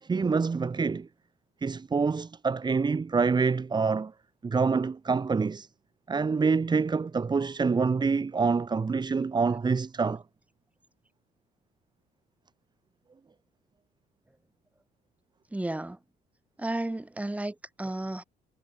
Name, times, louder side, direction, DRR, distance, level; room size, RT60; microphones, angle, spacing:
voice 1, 0.0-1.1 1.6-4.1 4.4-5.7 6.1-10.2, right 4 dB, 25° right, 2.7 m, -26 dB
voice 2, 15.5-16.0 16.6-18.2, right 1 dB, 10° right, 4.6 m, -33 dB
cardioid pair, 110°, 17 cm